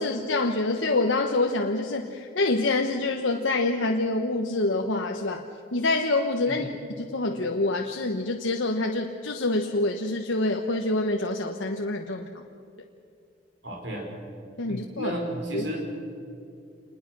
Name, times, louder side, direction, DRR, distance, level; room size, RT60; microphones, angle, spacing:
voice 1, 0.0-5.4 5.7-6.6 7.0-12.4 14.6-15.1 15.5-15.6, left 2 dB, 90° left, 3 dB, 1.2 m, -26 dB
voice 2, 13.6-14.1 14.7-15.9, right 1 dB, 75° right, 0 dB, 5.5 m, -33 dB
27.5 x 21.0 x 6.2 m, 2.5 s
head